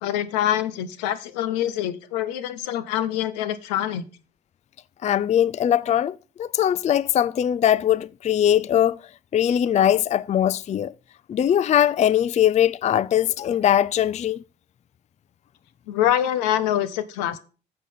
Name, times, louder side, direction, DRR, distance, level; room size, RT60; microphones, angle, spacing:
voice 1, 0.0-4.0 15.9-17.4, left 11 dB, 80° left, 0.8 m, -25 dB
voice 2, 5.0-9.0 9.3-10.9 11.3-14.4, left 10 dB, 35° left, 0.4 m, -21 dB
8.2 x 6.8 x 5.5 m
hypercardioid pair, 45°, 21 cm